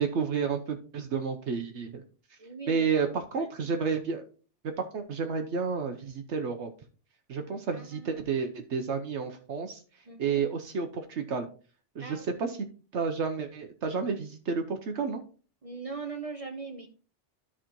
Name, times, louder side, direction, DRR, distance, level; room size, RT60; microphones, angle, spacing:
voice 1, 0.0-2.0 2.7-4.2 4.8-6.7 7.3-9.8 10.2-11.5 11.9-12.6 12.9-15.2, right 5 dB, 70° right, 6 dB, 1.1 m, -31 dB
voice 2, 2.4-3.1 3.4-3.5 7.7-8.3 10.1-10.5 12.0-12.5 15.6-16.9, right 4 dB, 35° right, 5 dB, 0.8 m, -41 dB
12.5 x 4.9 x 3.0 m, 0.39 s
omnidirectional pair, 1.3 m